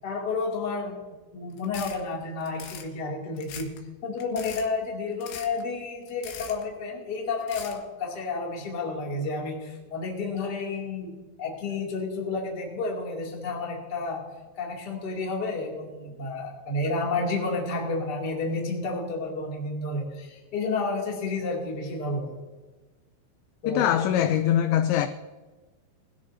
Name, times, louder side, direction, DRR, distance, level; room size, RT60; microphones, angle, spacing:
voice 1, 0.0-1.0 1.3-3.7 4.0-14.3 14.6-22.3 23.6-23.9, left 3 dB, 30° left, 1.9 m, -31 dB
sound 1, 1.6-2.0 2.4-2.9 3.4-3.8 4.2-4.7 5.2-5.6 6.1-6.6 7.4-7.8, left 8 dB, 70° left, 3.3 m, -40 dB
voice 2, 23.7-25.1, left 10 dB, 85° left, 2.5 m, -22 dB
20.5 x 13.5 x 2.7 m
omnidirectional pair, 5.7 m